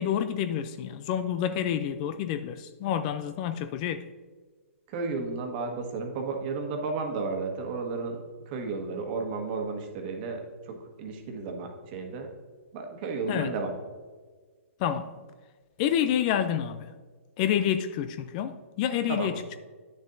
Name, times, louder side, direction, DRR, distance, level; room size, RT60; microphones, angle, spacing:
voice 1, 0.0-4.1 13.3-13.5 14.8-15.1 15.8-16.9 17.4-19.6, left 9 dB, 35° left, 0.4 m, -28 dB
voice 2, 4.9-8.2 8.5-12.3 12.7-13.7 19.1-19.4, right 4 dB, 40° right, 1.4 m, -33 dB
10.0 x 6.8 x 2.6 m
hypercardioid pair, 140°, 8 cm